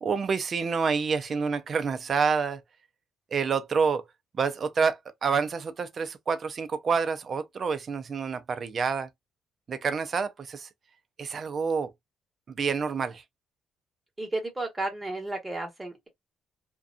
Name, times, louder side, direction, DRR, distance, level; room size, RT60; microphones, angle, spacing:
voice 1, 0.0-2.6 3.3-4.0 4.4-9.1 9.7-10.7 11.2-11.9 12.5-13.2, right 5 dB, 45° right, 0.5 m, -28 dB
voice 2, 14.2-16.1, right 2 dB, 20° right, 1.2 m, -33 dB
2.4 x 2.2 x 2.4 m
cardioid pair, 90°, 0 cm